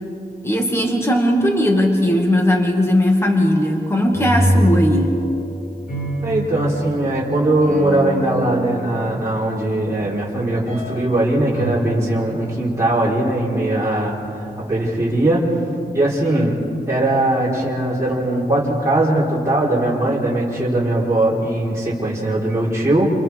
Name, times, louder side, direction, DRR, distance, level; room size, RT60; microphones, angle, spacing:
voice 1, 0.4-5.1, left 1 dB, 15° left, 0 dB, 2.0 m, -18 dB
sound 1, 4.0-9.6 10.7-11.2 11.5-11.7, equal, 70° left, 7.2 m, -25 dB
voice 2, 6.2-15.4 15.9-16.6 16.9-23.1, right 1 dB, 15° right, -8 dB, 4.4 m, -20 dB
29.0 x 29.0 x 3.6 m, 2.7 s
wide cardioid pair, 165°, 17 cm